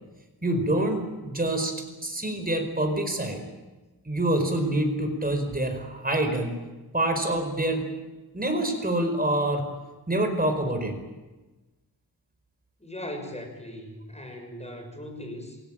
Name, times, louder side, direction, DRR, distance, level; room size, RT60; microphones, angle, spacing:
voice 1, 0.4-1.7 2.0-3.4 4.0-6.6 6.9-7.8 8.3-9.7 10.1-10.9, right 1 dB, 25° right, 5 dB, 5.0 m, -26 dB
voice 2, 12.8-15.6, left 1 dB, 15° left, 4 dB, 6.5 m, -39 dB
27.5 x 18.0 x 9.0 m, 1.2 s
wide cardioid pair, 85°, 39 cm